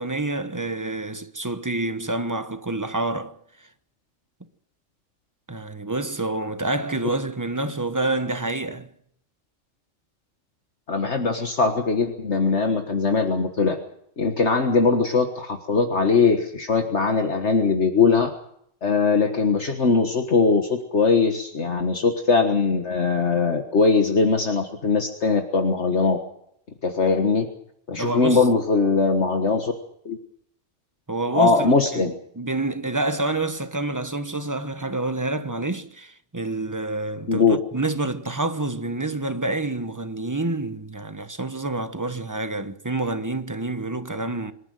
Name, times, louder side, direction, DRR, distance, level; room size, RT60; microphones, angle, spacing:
voice 1, 0.0-3.4 5.5-8.9 27.9-28.4 31.1-37.4 37.7-44.5, right 2 dB, 15° right, 1.1 m, -28 dB
voice 2, 10.9-13.8 14.2-18.3 18.8-26.2 26.8-27.5 27.9-29.7 30.1-30.2 31.3-32.1 37.3-37.6, left 4 dB, 60° left, 1.8 m, -21 dB
26.0 x 11.5 x 9.3 m
omnidirectional pair, 1.4 m